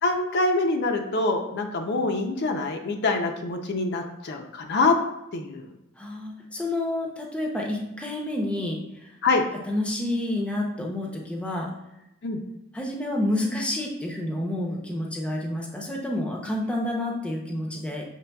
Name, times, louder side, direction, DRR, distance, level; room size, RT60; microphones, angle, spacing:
voice 1, 0.0-5.0 5.3-5.7 9.2-9.4 12.2-12.4, left 3 dB, 55° left, 3 dB, 0.5 m, -25 dB
voice 2, 6.0-8.8 9.6-11.7 12.7-18.0, left 1 dB, 5° left, -1 dB, 0.6 m, -29 dB
6.6 x 3.2 x 2.3 m, 0.89 s
head